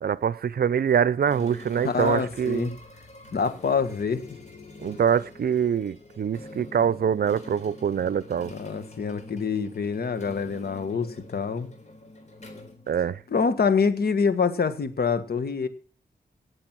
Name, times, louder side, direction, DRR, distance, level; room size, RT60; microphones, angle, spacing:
voice 1, 0.0-2.7 4.8-8.5 12.9-13.2, right 8 dB, 65° right, 0.5 m, -24 dB
sound 1, 1.3-13.5, left 2 dB, 45° left, 3.9 m, -46 dB
voice 2, 1.8-2.8 3.3-4.2 8.5-11.7 13.3-15.7, left 5 dB, 70° left, 1.6 m, -26 dB
18.0 x 7.6 x 6.1 m
cardioid pair, 65°, 17 cm